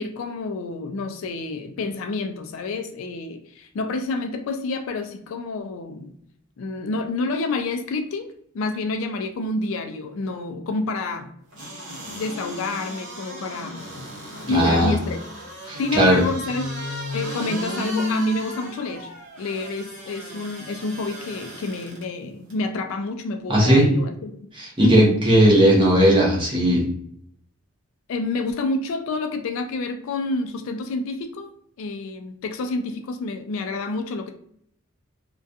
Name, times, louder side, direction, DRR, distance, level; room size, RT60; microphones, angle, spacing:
voice 1, 0.0-6.2 6.6-11.3 12.1-13.8 14.5-15.2 15.8-16.8 17.1-19.1 19.4-24.3 24.8-25.3 28.1-31.5 31.8-34.3, left 3 dB, 60° left, 6 dB, 0.3 m, -28 dB
sound 1, 11.5-22.0 22.5-22.6, left 1 dB, 55° right, 0.9 m, -34 dB
voice 2, 14.5-14.9 15.7-16.2 23.5-23.9 24.5-26.8, right 1 dB, 20° right, -4 dB, 0.7 m, -17 dB
2.3 x 2.2 x 2.6 m, 0.67 s
head